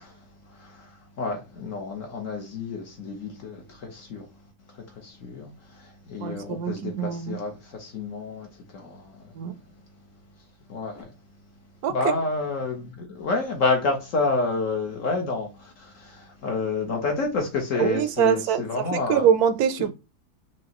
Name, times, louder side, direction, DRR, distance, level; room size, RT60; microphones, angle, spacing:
voice 1, 0.0-9.6 10.7-11.1 11.9-19.3, left 3 dB, 60° left, 1.2 m, -30 dB
voice 2, 6.2-7.4 9.3-9.5 11.8-11.9 17.8-19.9, right 8 dB, 80° right, 1.1 m, -24 dB
5.0 x 2.9 x 2.9 m
omnidirectional pair, 1.6 m